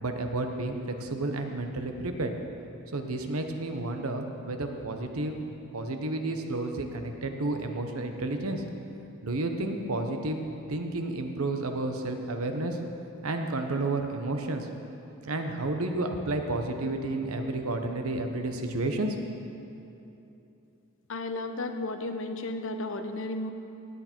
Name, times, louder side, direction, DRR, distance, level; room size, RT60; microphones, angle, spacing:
voice 1, 0.0-2.3 2.9-5.4 5.7-8.6 9.2-10.4 10.7-12.8 13.2-14.7 15.2-19.2, right 2 dB, 80° right, 5 dB, 1.1 m, -31 dB
voice 2, 21.1-23.5, left 2 dB, 60° left, 7 dB, 0.8 m, -33 dB
17.0 x 8.7 x 4.5 m, 2.9 s
head